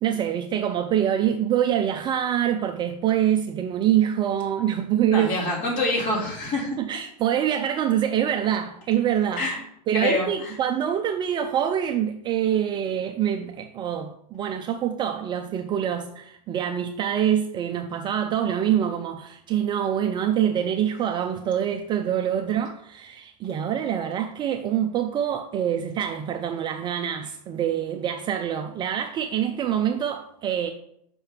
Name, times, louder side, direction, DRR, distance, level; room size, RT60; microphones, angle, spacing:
voice 1, 0.0-5.3 6.8-9.5 9.9-30.7, right 10 dB, 20° right, 0.5 m, -25 dB
voice 2, 5.1-6.8 9.4-9.6 9.9-10.5, left 2 dB, 35° left, 3.2 m, -26 dB
5.7 x 5.3 x 5.8 m
supercardioid pair, 145°, 21 cm